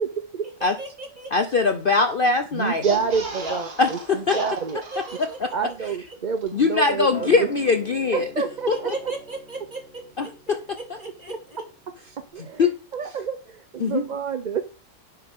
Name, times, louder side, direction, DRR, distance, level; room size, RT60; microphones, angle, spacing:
voice 1, 0.0-0.5 2.5-4.8 5.5-7.5 8.1-8.9 12.2-14.6, right 6 dB, 50° right, 0.5 m, -28 dB
voice 2, 0.6-1.3 3.4-3.6 4.2-5.5 8.7-11.6, right 2 dB, 30° right, 2.8 m, -36 dB
voice 3, 1.3-2.8 3.8-4.4 5.2-5.5 6.5-8.3 8.7-8.9 10.2-10.6 12.6-12.7 13.8-14.0, left 4 dB, 45° left, 0.8 m, -21 dB
sound 1, 2.7-5.7 6.0-6.1 6.4-6.5, right 3 dB, 80° right, 2.5 m, -37 dB
Acoustic guitar, 7.1-12.3, left 2 dB, 65° left, 4.0 m, -45 dB
10.0 x 7.9 x 3.7 m
omnidirectional pair, 1.6 m